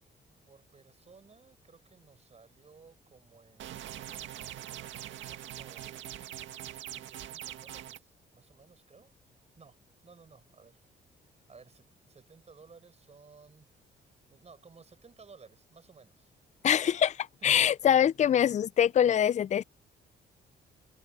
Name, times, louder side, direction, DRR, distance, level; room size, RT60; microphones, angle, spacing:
voice 1, 0.5-4.2 5.2-6.1 6.9-9.1 9.6-10.8 11.5-13.7 14.3-16.3 17.4-17.5, right 5 dB, 35° right, 6.3 m, -57 dB
sound 1, 3.6-8.0, right 12 dB, 85° right, 1.9 m, -43 dB
voice 2, 16.6-19.6, left 9 dB, 40° left, 0.4 m, -24 dB
open air
cardioid pair, 90°, 19 cm